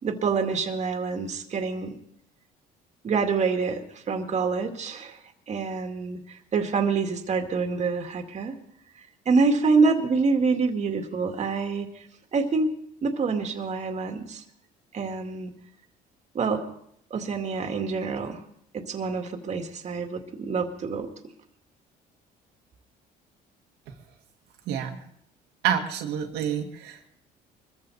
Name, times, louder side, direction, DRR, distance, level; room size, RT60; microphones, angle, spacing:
voice 1, 0.0-1.9 3.0-3.8 4.1-5.2 5.5-8.6 9.3-11.9 12.3-12.8 13.0-14.4 14.9-15.5 16.3-16.7 17.1-18.4 18.7-21.1, right 4 dB, 40° right, 5 dB, 2.2 m, -26 dB
voice 2, 24.7-25.0 25.6-27.1, right 9 dB, 85° right, 2 dB, 1.9 m, -28 dB
23.0 x 14.5 x 4.1 m, 0.70 s
cardioid pair, 110°, 17 cm